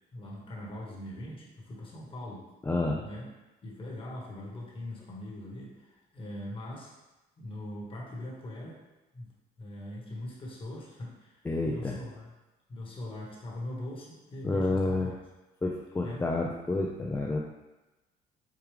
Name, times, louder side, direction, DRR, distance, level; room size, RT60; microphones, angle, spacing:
voice 1, 0.1-2.5 3.0-3.3 3.6-6.9 7.4-8.8 9.1-9.3 9.6-12.3 12.7-15.1 16.0-16.2, left 1 dB, 30° left, -4 dB, 1.1 m, -41 dB
voice 2, 2.7-3.0 11.5-12.0 14.4-15.1 15.6-17.4, left 2 dB, 15° left, -2 dB, 0.3 m, -29 dB
4.7 x 2.3 x 3.2 m, 1.0 s
cardioid pair, 110°, 17 cm